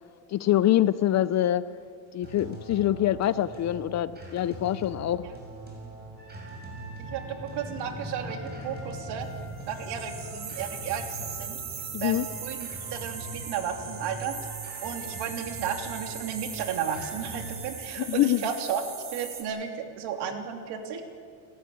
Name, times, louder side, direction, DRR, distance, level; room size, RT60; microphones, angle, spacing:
voice 1, 0.3-1.7 2.1-5.3 11.9-12.2 18.0-18.4, left 13 dB, 40° left, 16 dB, 0.6 m, -25 dB
sound 1, 2.2-17.7, right 3 dB, 20° right, 6.1 m, -42 dB
sound 2, 5.4-15.0, left 1 dB, 20° left, 7.0 m, -46 dB
voice 2, 7.0-9.3 9.7-11.6 12.0-14.5 14.8-18.8 19.1-21.0, right 7 dB, 65° right, 4 dB, 3.1 m, -34 dB
sound 3, 9.6-19.4, right 6 dB, 40° right, 3.7 m, -40 dB
29.0 x 13.5 x 9.5 m, 2.2 s
cardioid pair, 125°, 44 cm